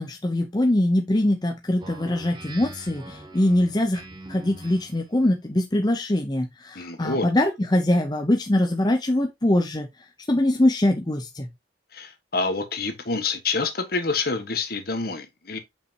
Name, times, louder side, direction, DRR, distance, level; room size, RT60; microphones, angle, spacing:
voice 1, 0.0-4.0 4.3-9.9 10.3-11.5, left 1 dB, 20° left, 0.7 m, -23 dB
Speech synthesizer, 1.8-5.1, right 2 dB, 25° right, 1.1 m, -42 dB
voice 2, 6.7-7.3 11.9-15.6, left 3 dB, 55° left, 1.4 m, -27 dB
6.9 x 5.5 x 2.8 m
head